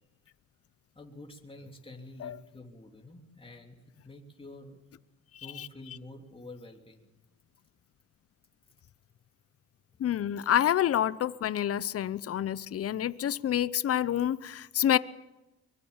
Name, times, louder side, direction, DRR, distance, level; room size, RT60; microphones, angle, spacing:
voice 1, 1.0-3.8 4.0-4.8 5.4-7.1, left 2 dB, 20° left, 2 dB, 3.5 m, -48 dB
voice 2, 10.0-15.0, left 10 dB, 50° left, 17 dB, 0.8 m, -28 dB
23.5 x 22.5 x 7.3 m, 1.0 s
cardioid pair, 90°, 30 cm